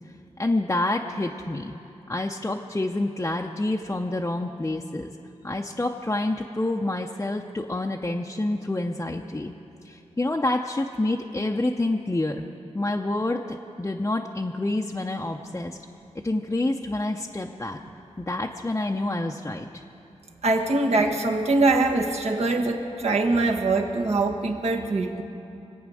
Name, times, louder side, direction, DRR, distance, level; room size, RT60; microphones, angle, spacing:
voice 1, 0.4-1.7 2.1-5.1 5.4-9.5 9.8-12.4 12.7-15.8 16.2-17.8 18.2-19.8, left 2 dB, 20° left, 0 dB, 0.7 m, -28 dB
voice 2, 20.4-25.2, right 2 dB, 65° right, 1 dB, 1.5 m, -23 dB
24.0 x 8.7 x 6.4 m, 2.8 s
wide cardioid pair, 70°, 12 cm